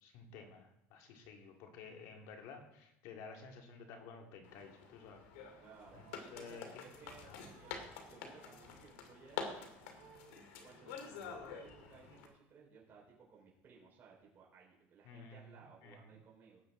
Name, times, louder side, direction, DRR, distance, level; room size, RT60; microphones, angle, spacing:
voice 1, 0.0-5.2 5.9-6.0 6.3-6.8 7.2-7.4 15.0-15.6 15.8-16.1, left 5 dB, 65° left, 2 dB, 2.4 m, -53 dB
sound 1, 4.4-12.3, left 6 dB, 80° left, 2.2 m, -48 dB
voice 2, 5.6-9.7 10.6-16.6, right 5 dB, 30° right, -4 dB, 4.6 m, -60 dB
sound 2, 5.8-8.7 9.4-11.3 11.7-12.7, right 7 dB, 75° right, 4.0 m, -65 dB
17.5 x 7.9 x 3.9 m, 0.81 s
supercardioid pair, 130°, 6 cm